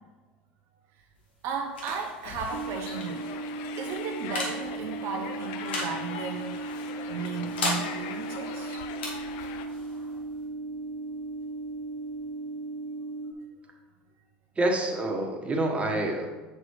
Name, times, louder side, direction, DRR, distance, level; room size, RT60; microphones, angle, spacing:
sound 1, 1.0-12.3, left 2 dB, 80° left, 1.8 m, -39 dB
voice 1, 1.4-3.4 3.8-6.6 7.1-8.8, right 6 dB, 55° right, 2 dB, 0.7 m, -35 dB
sound 2, 2.2-9.7, left 8 dB, 65° left, 0.6 m, -41 dB
sound 3, 2.5-13.3, right 3 dB, 85° right, 0.9 m, -36 dB
voice 2, 14.6-16.3, right 1 dB, 20° right, 1 dB, 1.4 m, -27 dB
7.4 x 6.2 x 3.2 m, 1.2 s
hypercardioid pair, 80°, 6 cm